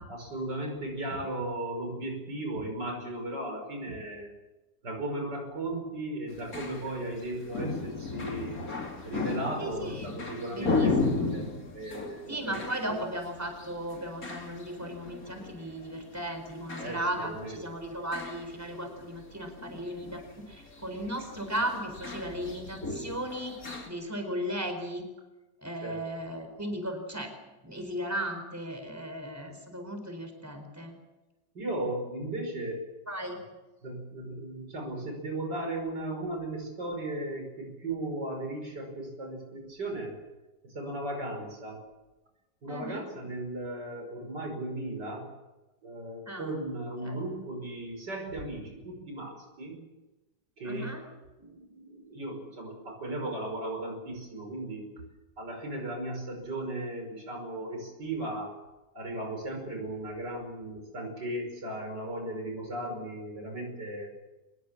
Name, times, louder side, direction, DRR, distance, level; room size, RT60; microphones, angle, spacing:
voice 1, 0.1-4.3 4.8-8.6 9.0-13.0 16.8-17.6 25.8-26.0 31.5-32.8 33.8-40.1 40.6-41.8 42.6-45.3 45.8-49.7 50.6-50.9 51.4-54.9 55.4-58.6 58.9-64.1, right 1 dB, 85° right, 3 dB, 6.3 m, -36 dB
sound 1, 6.3-23.9, left 3 dB, 55° left, 3.5 m, -36 dB
voice 2, 9.6-10.2 10.5-10.9 11.2-11.3 12.3-23.6 23.9-25.1 25.6-27.3 27.6-30.9 33.1-33.4 42.7-43.0 46.3-46.5 47.0-47.2 50.6-51.0, right 1 dB, 10° right, 5 dB, 4.4 m, -36 dB
23.5 x 21.0 x 7.4 m, 1.1 s
omnidirectional pair, 1.8 m